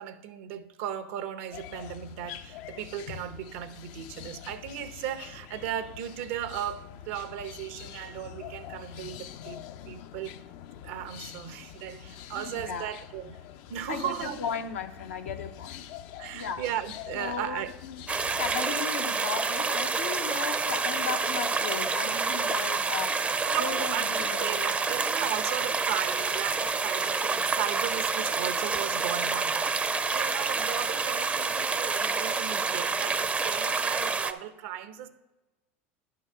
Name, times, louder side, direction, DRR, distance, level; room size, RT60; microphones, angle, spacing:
voice 1, 0.0-10.3 10.8-13.4 13.7-14.4 16.2-17.7 18.6-18.8 23.5-29.7 30.1-35.1, right 11 dB, 70° right, 9 dB, 0.7 m, -36 dB
sound 1, 1.5-18.6, left 10 dB, 60° left, 0.5 m, -45 dB
voice 2, 12.3-12.9 13.9-15.8 16.3-16.6 17.1-18.0 18.3-23.2 23.6-24.7, left 6 dB, 85° left, 6 dB, 0.8 m, -36 dB
sound 2, 18.1-34.3, right 4 dB, 20° right, 0.5 m, -28 dB
10.5 x 3.9 x 6.4 m, 1.1 s
hypercardioid pair, 95°, 7 cm